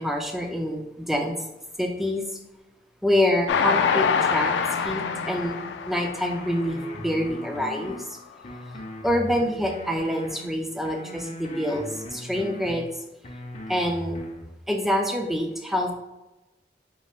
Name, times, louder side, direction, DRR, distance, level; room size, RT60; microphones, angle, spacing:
voice 1, 0.0-1.4 1.8-2.2 3.0-5.6 5.9-8.0 9.0-12.9 13.7-14.2 14.7-15.9, left 1 dB, ahead, 2 dB, 0.4 m, -26 dB
Train, 3.5-6.9 7.4-7.5 7.8-7.9, left 6 dB, 80° left, 0.3 m, -25 dB
sound 1, 4.8-5.6 6.0-8.0 8.4-10.4 10.8-12.8 13.2-14.4, equal, 35° left, 0.6 m, -39 dB
5.2 x 3.5 x 2.4 m, 1.0 s
head